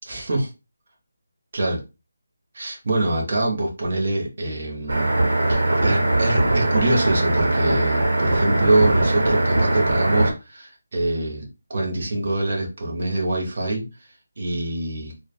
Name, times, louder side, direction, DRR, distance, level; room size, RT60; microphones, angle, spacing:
voice 1, 0.0-0.5 1.5-1.8 2.5-5.1 5.5-11.4 11.7-13.9 14.4-15.1, right 2 dB, 40° right, 0 dB, 0.9 m, -24 dB
sound 1, 4.9-10.3, right 2 dB, 85° right, 0.9 m, -20 dB
3.2 x 2.2 x 2.3 m, 0.27 s
figure-of-eight pair, 175°, 0 cm